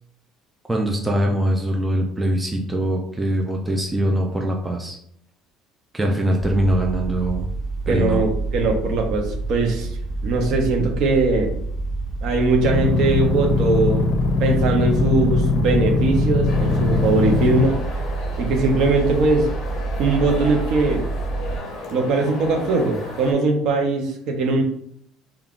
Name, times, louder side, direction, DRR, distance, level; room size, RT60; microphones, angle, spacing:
voice 1, 0.7-5.0 5.9-7.5 7.9-8.2, right 1 dB, 10° right, 0 dB, 0.3 m, -22 dB
sound 1, 6.4-21.6, right 3 dB, 15° left, 0.8 m, -28 dB
voice 2, 7.9-9.9 10.2-11.5 12.2-14.1 14.4-17.8 18.4-19.5 20.0-21.0 21.9-24.6, right 3 dB, 55° right, 3 dB, 0.6 m, -20 dB
sound 2, 12.6-17.6, left 3 dB, 80° left, 0.5 m, -21 dB
sound 3, 16.5-23.3, left 2 dB, 45° left, 0.7 m, -34 dB
3.5 x 2.3 x 2.3 m, 0.69 s
cardioid pair, 145°, 0 cm